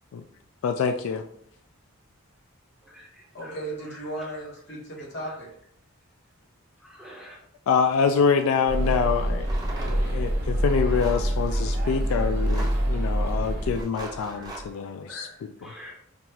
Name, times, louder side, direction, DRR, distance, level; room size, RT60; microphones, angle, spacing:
voice 1, 0.6-1.2 7.7-9.5 9.8-15.7, left 6 dB, 80° left, 7 dB, 0.3 m, -26 dB
voice 2, 2.8-3.6 3.9-4.3 5.2-5.3 6.8-7.4 14.2-15.9, equal, ahead, -5 dB, 1.0 m, -47 dB
voice 3, 3.3-5.5, right 1 dB, 55° left, -3 dB, 1.3 m, -35 dB
sound 1, 8.7-13.8, right 1 dB, 50° right, 1.1 m, -26 dB
sound 2, 9.4-10.0 11.0-11.3 12.3-12.9 13.7-14.7, right 2 dB, 20° right, 0.6 m, -39 dB
5.2 x 2.4 x 2.9 m, 0.69 s
head